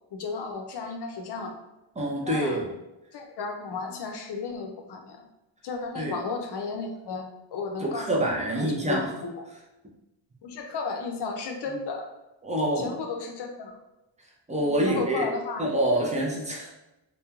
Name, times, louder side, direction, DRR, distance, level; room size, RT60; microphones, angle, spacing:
voice 1, 0.1-1.6 2.2-2.6 3.1-5.2 5.6-9.4 10.4-12.0 12.8-13.7 14.6-15.6, left 4 dB, 60° left, 3 dB, 0.5 m, -34 dB
voice 2, 2.0-2.7 6.0-6.2 7.8-9.1 12.4-12.9 14.5-15.3 15.6-16.7, right 1 dB, 15° right, -3 dB, 0.4 m, -26 dB
2.9 x 2.1 x 2.3 m, 0.97 s
wide cardioid pair, 125°, 45 cm